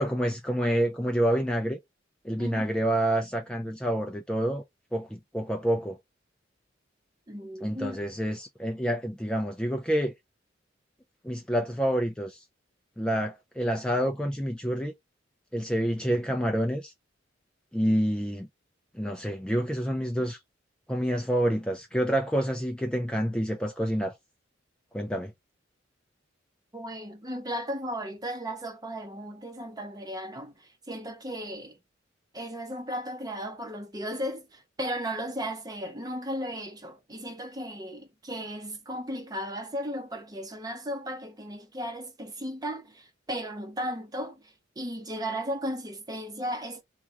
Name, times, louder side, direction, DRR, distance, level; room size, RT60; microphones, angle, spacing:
voice 1, 0.0-1.8 2.2-4.6 4.9-6.0 7.6-10.1 11.2-12.4 13.0-14.9 15.5-16.9 17.7-18.5 18.9-20.4 20.9-24.1 24.9-25.3, equal, 5° left, 0.4 m, -28 dB
voice 2, 7.3-8.0 26.7-31.8 32.3-46.8, equal, 20° right, 0.8 m, -35 dB
3.6 x 2.3 x 2.9 m
head